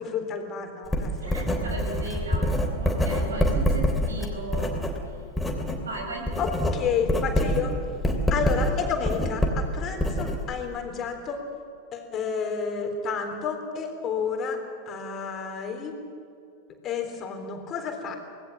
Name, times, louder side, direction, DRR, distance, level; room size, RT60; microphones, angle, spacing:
voice 1, 0.0-1.7 6.4-7.7 8.3-11.4 11.9-14.6 14.9-16.0 16.8-18.2, left 6 dB, 30° left, 4 dB, 3.7 m, -30 dB
Writing, 0.9-5.8 6.1-10.7, equal, 5° left, 3.3 m, -26 dB
voice 2, 1.2-2.5 2.8-4.8 5.1-5.2 5.8-6.4, right 2 dB, 70° right, 2 dB, 6.3 m, -36 dB
26.0 x 19.0 x 7.4 m, 2.7 s
figure-of-eight pair, 90°, 0 cm